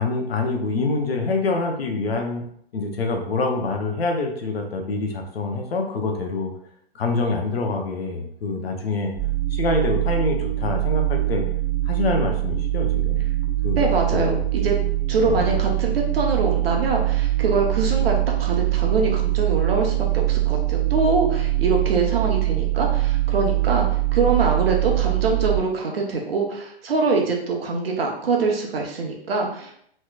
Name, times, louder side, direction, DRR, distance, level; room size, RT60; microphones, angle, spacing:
voice 1, 0.0-2.4 2.7-6.5 6.9-9.2 9.5-11.4 11.9-13.2 13.6-14.7 15.2-15.5, left 3 dB, 65° left, 2 dB, 0.8 m, -26 dB
sound 1, 9.2-25.6, right 17 dB, 5° right, 1.1 m, -23 dB
voice 2, 13.8-14.8 15.1-29.8, right 3 dB, 65° right, 1 dB, 0.9 m, -24 dB
3.2 x 3.0 x 2.3 m, 0.67 s
figure-of-eight pair, 120°, 32 cm